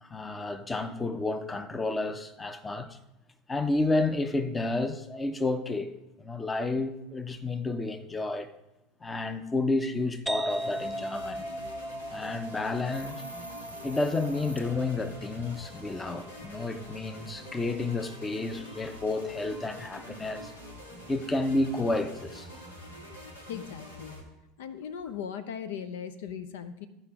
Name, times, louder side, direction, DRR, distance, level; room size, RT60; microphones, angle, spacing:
voice 1, 0.0-3.0 3.5-8.5 9.0-11.5 12.1-13.2 13.8-20.5 21.1-22.5, left 2 dB, 15° left, 0.7 m, -31 dB
sound 1, 10.3-17.7, right 1 dB, 10° right, 0.4 m, -39 dB
sound 2, 10.5-24.2, equal, 80° left, 1.6 m, -46 dB
Hiss, 12.9-14.6, right 1 dB, 90° right, 0.5 m, -45 dB
voice 2, 23.5-24.1 24.6-26.9, left 8 dB, 60° left, 0.5 m, -38 dB
13.5 x 5.2 x 4.7 m
figure-of-eight pair, 75°, 0 cm